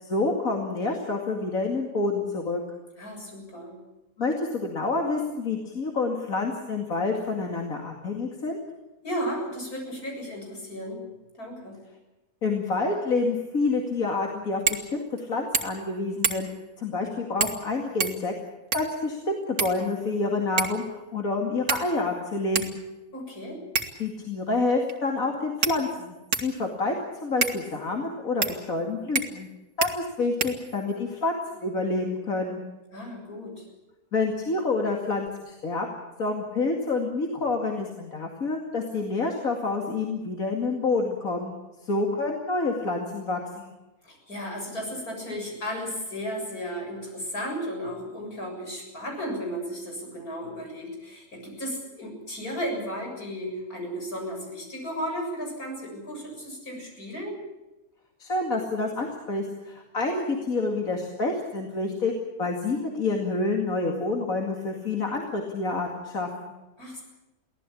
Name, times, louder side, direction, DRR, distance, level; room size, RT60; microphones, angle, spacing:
voice 1, 0.0-2.6 4.2-8.6 12.4-16.5 16.8-18.3 18.7-22.8 24.0-26.1 26.4-26.9 27.2-29.5 29.8-32.6 34.1-35.9 36.2-41.5 41.8-43.7 58.2-62.1 62.4-66.5, left 3 dB, 65° left, 1 dB, 2.8 m, -28 dB
voice 2, 3.0-3.8 9.0-11.0 11.3-11.8 23.1-23.6 32.9-33.7 44.0-57.3 66.8-67.0, equal, 80° left, 1 dB, 7.9 m, -34 dB
sound 1, 14.7-14.9 15.2-15.3 15.5-15.9 16.2-16.6 17.4-17.7 18.0-19.0 19.6-20.2 20.6-20.9 21.7-22.1 22.6-22.7 23.8-24.1 24.9-25.0 25.6-26.6 27.4-27.6 28.4-28.6 29.2-29.5 29.8-29.9 30.4-31.0, right 5 dB, 80° right, 2.2 m, -28 dB
23.5 x 17.0 x 8.5 m, 1.1 s
omnidirectional pair, 1.5 m